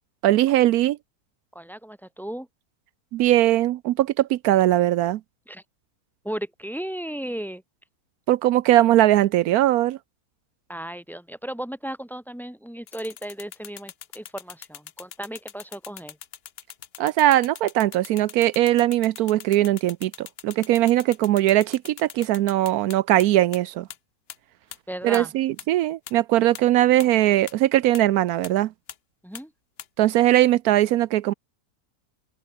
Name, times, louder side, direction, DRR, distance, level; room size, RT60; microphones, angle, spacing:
voice 1, 0.2-1.0 3.1-5.2 8.3-10.0 17.0-23.9 25.0-28.7 30.0-31.3, right 14 dB, 80° right, 1.1 m, -20 dB
voice 2, 1.5-2.5 5.5-5.6 6.2-7.6 10.7-16.2 24.9-25.3 29.2-29.5, right 1 dB, ahead, 2.3 m, -35 dB
sound 1, 12.9-23.2 23.5-23.6 23.9-24.0 24.3-24.4 24.7-24.8 25.1-25.2 25.6-25.7 26.1-26.2 26.5-26.6 27.0-27.1 27.5-27.6 27.9-28.0 28.4-28.5 28.9-29.0 29.3-29.4 29.8-29.9, left 9 dB, 50° left, 0.8 m, -40 dB
omnidirectional pair, 1.6 m